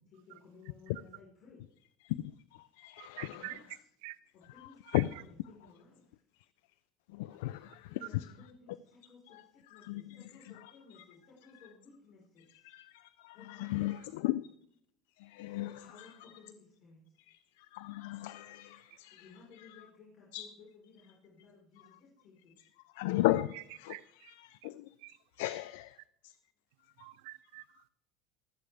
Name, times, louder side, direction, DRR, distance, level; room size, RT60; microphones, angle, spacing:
voice 1, 0.1-1.7 3.2-3.9 4.3-4.8 5.2-6.0 7.9-9.4 9.7-12.4 13.3-14.2 15.5-17.0 19.2-22.5, left 4 dB, 50° left, 4.6 m, -57 dB
voice 2, 2.0-3.6 4.9-5.1 7.1-8.3 9.3-9.4 9.7-10.2 12.6-14.5 15.2-16.3 17.3-19.3 19.6-19.8 20.3-20.5 22.9-26.4 27.0-27.1, left 17 dB, 80° left, 0.4 m, -36 dB
voice 3, 3.0-3.6 4.0-4.2 4.9-5.0 8.0-8.1 23.9-24.3 25.0-25.2 27.0-27.9, right 21 dB, 75° right, 0.5 m, -46 dB
23.5 x 8.3 x 3.4 m
supercardioid pair, 95°, 0 cm